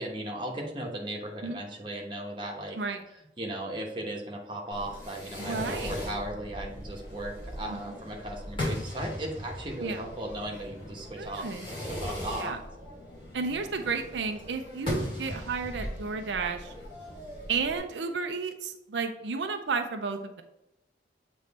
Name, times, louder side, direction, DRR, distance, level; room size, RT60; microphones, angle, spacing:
voice 1, 0.0-2.8 3.4-11.5 11.8-12.5, right 1 dB, 25° right, -1 dB, 1.1 m, -37 dB
Fireworks, 4.7-17.8, left 1 dB, 30° left, 2.3 m, -38 dB
voice 2, 5.4-6.0 7.7-8.0 9.8-10.0 11.2-11.7 12.4-12.6 13.3-16.7 17.5-20.4, right 4 dB, 85° right, 6 dB, 0.5 m, -32 dB
7.5 x 3.1 x 4.2 m, 0.90 s
head